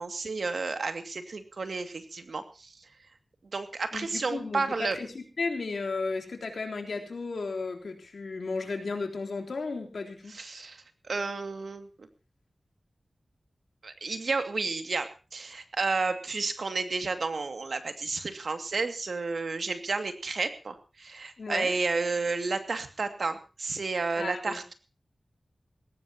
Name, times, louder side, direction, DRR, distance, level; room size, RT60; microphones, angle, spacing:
voice 1, 0.0-2.8 3.5-5.0 10.3-12.1 13.8-24.7, right 4 dB, 75° right, 8 dB, 2.4 m, -31 dB
voice 2, 3.9-10.4 21.4-21.7 24.2-24.6, left 4 dB, 85° left, 2 dB, 3.7 m, -34 dB
20.0 x 18.0 x 3.0 m, 0.33 s
wide cardioid pair, 95°, 0 cm